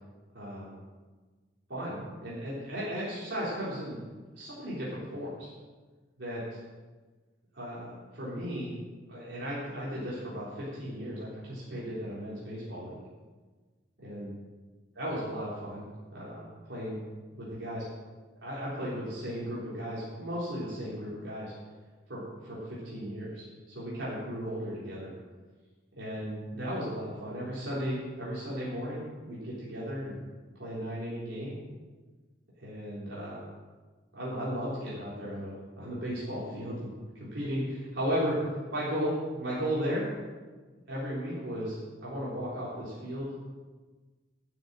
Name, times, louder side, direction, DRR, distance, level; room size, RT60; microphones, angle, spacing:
voice 1, 0.3-0.7 1.7-4.0 4.3-5.5 6.2-6.6 7.5-8.7 9.1-13.0 14.0-14.3 15.0-15.8 16.1-17.0 17.4-17.8 18.4-21.5 22.1-23.4 23.7-25.1 26.0-30.2 30.6-31.5 32.6-33.4 34.1-38.4 38.7-40.1 40.9-43.3, equal, 80° right, -8 dB, 3.9 m, -35 dB
12.0 x 7.0 x 7.6 m, 1.3 s
head